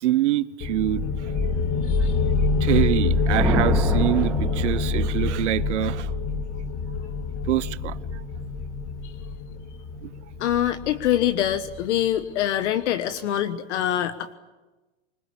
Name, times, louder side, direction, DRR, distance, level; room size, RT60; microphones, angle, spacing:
voice 1, 0.0-1.1 2.6-6.1 7.5-7.9 10.0-10.1, right 14 dB, 80° right, 1.1 m, -25 dB
sound 1, 0.6-12.0, left 4 dB, 35° left, 2.3 m, -26 dB
sound 2, 3.0-5.4, right 2 dB, 5° right, 3.9 m, -28 dB
voice 2, 10.4-14.3, left 11 dB, 75° left, 1.4 m, -25 dB
25.0 x 22.0 x 8.6 m
supercardioid pair, 135°, 35 cm